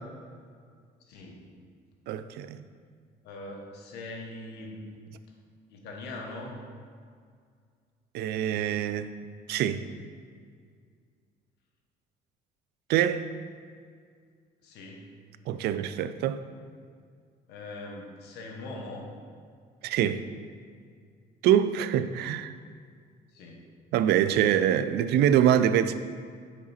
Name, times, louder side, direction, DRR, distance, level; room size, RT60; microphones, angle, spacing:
voice 1, 1.0-1.4 3.2-4.8 5.7-6.6 14.6-15.1 17.5-19.0 23.3-23.6, left 2 dB, 80° left, 0 dB, 1.3 m, -41 dB
voice 2, 2.1-2.6 8.1-9.1 9.5-9.9 12.9-13.3 15.5-16.4 19.8-20.2 21.4-22.5 23.9-25.9, right 10 dB, 75° right, 12 dB, 0.4 m, -24 dB
6.8 x 5.2 x 4.3 m, 2.1 s
cardioid pair, 110°, 17 cm